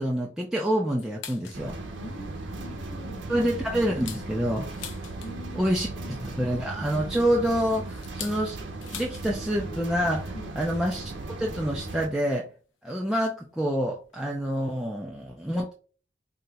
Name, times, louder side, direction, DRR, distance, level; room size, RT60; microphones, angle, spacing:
voice 1, 0.0-1.8 3.3-4.7 5.5-5.9 6.4-8.6 8.9-11.1 11.4-12.5 12.8-15.7, equal, ahead, -3 dB, 0.3 m, -27 dB
sound 1, 1.0-1.7 2.1-2.2 2.6-2.8 3.3-5.6 6.8-9.3 9.6-9.7 10.0-10.3 11.3-11.4 12.3-12.4 13.2-13.4 13.7-13.8 14.0-14.2, left 8 dB, 85° left, 0.5 m, -43 dB
sound 2, 1.5-12.1, right 2 dB, 70° right, 0.6 m, -37 dB
voice 2, 1.9-3.5 5.2-6.5 10.3-10.5, left 1 dB, 60° left, -5 dB, 1.0 m, -44 dB
2.8 x 2.1 x 3.9 m, 0.38 s
head